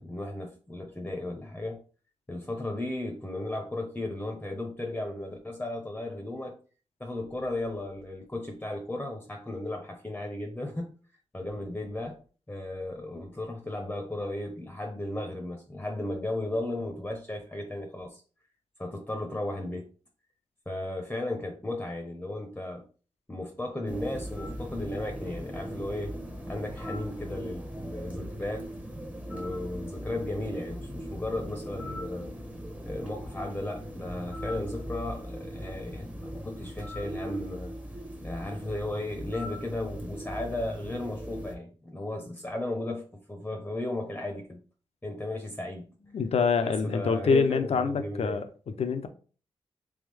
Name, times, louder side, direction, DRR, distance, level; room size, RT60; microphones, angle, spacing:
voice 1, 0.0-1.8 2.3-6.6 7.0-10.9 11.3-12.2 12.5-18.2 18.8-19.9 20.7-22.8 23.3-26.1 26.5-28.7 29.3-32.4 32.8-37.7 38.2-44.6 45.0-46.3 46.6-48.4, left 1 dB, 15° left, 0.8 m, -35 dB
sound 1, 23.9-41.5, equal, 15° right, 1.0 m, -39 dB
voice 2, 46.1-49.1, left 5 dB, 75° left, 0.6 m, -26 dB
3.5 x 3.4 x 3.4 m
cardioid pair, 55°, 11 cm